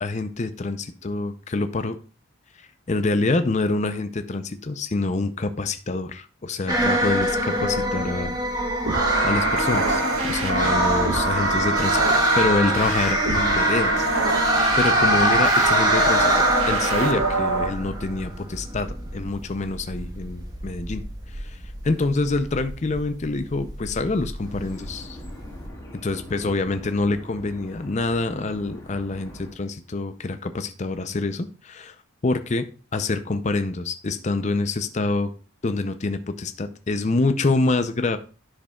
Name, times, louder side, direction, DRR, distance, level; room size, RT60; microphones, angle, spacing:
voice 1, 0.0-2.0 2.6-8.4 9.2-12.0 12.3-14.1 14.8-25.2 26.0-32.0 32.2-32.6 32.9-35.3 35.6-38.2, left 3 dB, 35° left, 9 dB, 0.5 m, -26 dB
sound 1, 6.7-25.7, right 1 dB, 20° right, 1.3 m, -24 dB
sound 2, 8.9-17.7, right 2 dB, 80° right, 1.4 m, -25 dB
sound 3, 24.4-29.5, left 1 dB, 15° left, 1.9 m, -42 dB
10.0 x 6.6 x 2.3 m, 0.35 s
head